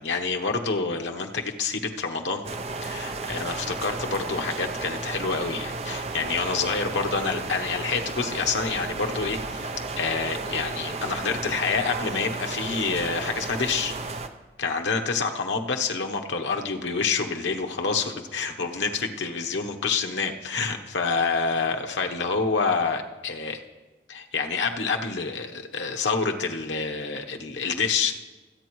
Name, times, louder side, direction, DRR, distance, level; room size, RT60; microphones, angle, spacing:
voice 1, 0.0-2.4 2.8-9.7 10.0-13.9 14.6-23.6 24.1-28.1, left 4 dB, 90° left, 4 dB, 1.0 m, -27 dB
sound 1, 2.4-14.3, right 3 dB, 35° right, 0.5 m, -33 dB
24.5 x 8.6 x 3.1 m, 1.2 s
head